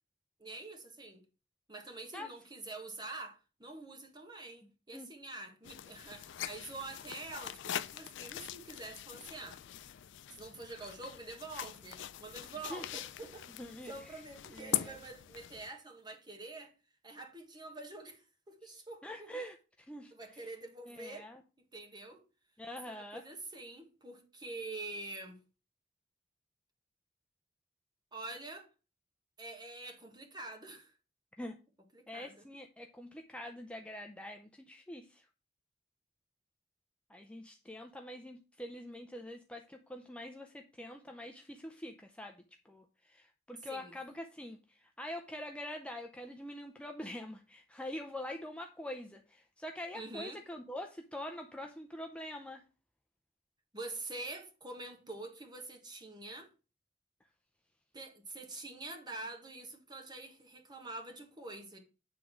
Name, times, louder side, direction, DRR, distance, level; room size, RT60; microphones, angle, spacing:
voice 1, 0.4-1.2 1.7-9.6 10.3-13.5 13.9-16.7 17.0-19.3 20.1-21.3 21.6-22.2 22.9-25.4 28.1-28.7 29.4-30.9 31.9-32.4 43.6-44.0 49.9-50.4 53.7-56.5 57.9-61.8, right 2 dB, 20° right, 1.6 m, -46 dB
sound 1, 5.6-15.7, left 11 dB, 65° left, 0.4 m, -42 dB
voice 2, 13.6-14.2 14.5-15.0 19.0-20.5 20.9-21.4 22.6-23.2 31.4-31.5 32.1-35.3 37.1-52.6, left 1 dB, 5° left, 0.5 m, -45 dB
9.0 x 3.7 x 6.0 m
head